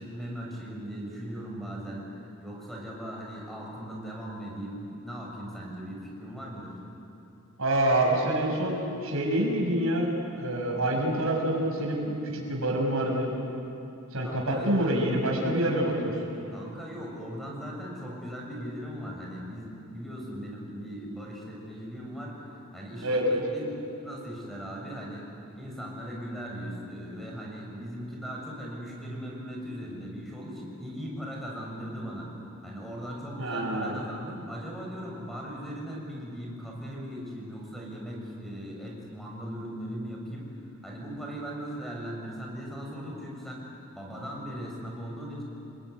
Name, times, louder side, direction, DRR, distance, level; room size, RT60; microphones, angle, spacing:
voice 1, 0.0-2.1 2.4-6.8 14.2-14.7 16.5-25.3 25.5-32.3 32.6-40.5 40.8-43.7 43.9-45.4, equal, ahead, -2 dB, 6.3 m, -38 dB
voice 2, 7.6-13.3 14.1-16.2 23.0-23.4 33.4-33.9, right 1 dB, 75° right, -1 dB, 6.7 m, -27 dB
30.0 x 20.0 x 9.7 m, 3.0 s
head